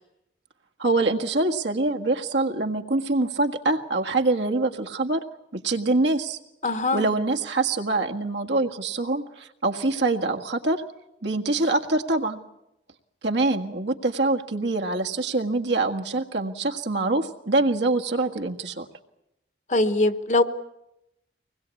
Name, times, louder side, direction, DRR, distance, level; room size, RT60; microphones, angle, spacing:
voice 1, 0.8-5.2 5.5-6.4 6.9-10.8 11.2-12.4 13.2-18.9, right 2 dB, 75° right, 2 dB, 1.8 m, -24 dB
voice 2, 6.6-7.1 19.7-20.4, left 2 dB, 40° left, 10 dB, 1.1 m, -22 dB
25.0 x 20.5 x 8.4 m, 0.88 s
head